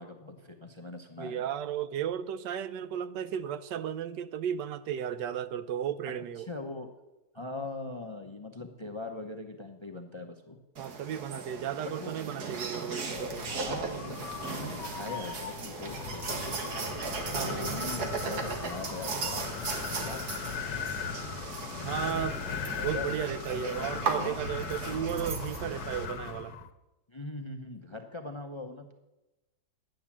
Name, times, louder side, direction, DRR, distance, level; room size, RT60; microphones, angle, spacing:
voice 1, 0.0-1.4 6.4-6.9 7.3-10.6 12.0-12.1 13.5-16.6 17.2-19.5 19.8-20.5 21.8-22.3 22.8-23.0 23.5-24.4 27.1-28.9, left 2 dB, 25° left, 0.6 m, -41 dB
voice 2, 1.2-6.5 10.8-13.5 17.3-17.9 21.8-22.4 22.8-26.6, right 9 dB, 85° right, 1.3 m, -34 dB
sound 1, 10.8-26.1, right 4 dB, 65° right, 1.9 m, -37 dB
Wind, 13.1-26.7, left 7 dB, 80° left, 1.4 m, -39 dB
11.5 x 9.0 x 7.3 m
omnidirectional pair, 1.8 m